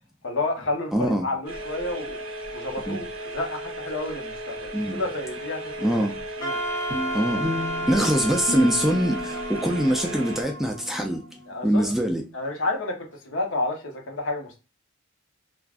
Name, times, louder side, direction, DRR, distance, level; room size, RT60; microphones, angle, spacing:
voice 1, 0.2-2.2 2.5-3.1 3.3-6.1 6.4-6.6 11.5-11.9 12.3-14.6, left 2 dB, 60° left, 0.9 m, -30 dB
voice 2, 0.9-1.3 2.9-3.0 4.7-5.0 5.8-6.2 7.1-7.5 7.9-12.2, equal, ahead, 0.3 m, -24 dB
sound 1, 1.5-10.4, right 1 dB, 65° right, 1.0 m, -36 dB
Wind instrument woodwind instrument, 6.4-11.4, right 1 dB, 20° left, 0.7 m, -32 dB
sound 2, 6.9-11.5, left 1 dB, 15° right, 0.7 m, -35 dB
3.4 x 2.4 x 2.4 m
head